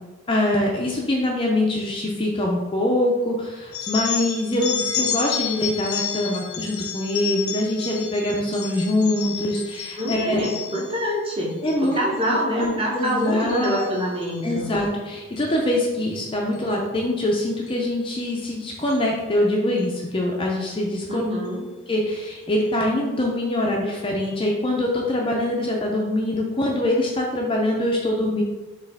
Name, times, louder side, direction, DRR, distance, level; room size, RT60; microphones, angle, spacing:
voice 1, 0.3-10.4 11.6-13.9 14.4-21.3 21.9-28.4, left 1 dB, 25° left, -1 dB, 0.4 m, -24 dB
sound 1, 3.7-11.0 11.5-11.9 12.2-12.7 13.0-14.4 15.4-15.6 16.5-16.7 17.7-17.8 18.2-18.3 18.8-19.0, left 7 dB, 85° left, 0.8 m, -31 dB
voice 2, 10.0-14.7 21.1-21.6, equal, 25° right, -3 dB, 0.9 m, -26 dB
4.5 x 3.2 x 3.4 m, 1.2 s
head